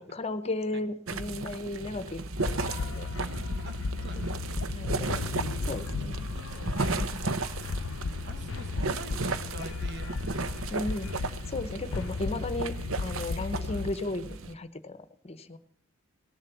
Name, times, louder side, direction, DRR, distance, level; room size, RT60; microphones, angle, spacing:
voice 1, 0.0-3.1 4.2-4.3 4.7-5.2 5.7-6.3 7.0-7.2 10.7-15.6, left 2 dB, 30° left, 12 dB, 0.8 m, -35 dB
sound 1, 1.1-14.5, right 3 dB, 85° right, 0.8 m, -35 dB
sound 2, 2.4-13.9, left 3 dB, 70° left, 0.5 m, -35 dB
voice 2, 3.6-4.4 5.3-6.1 6.3-7.1 8.2-10.8 13.7-13.9, right 1 dB, 55° right, 8 dB, 1.5 m, -46 dB
18.5 x 7.3 x 7.1 m, 0.62 s
head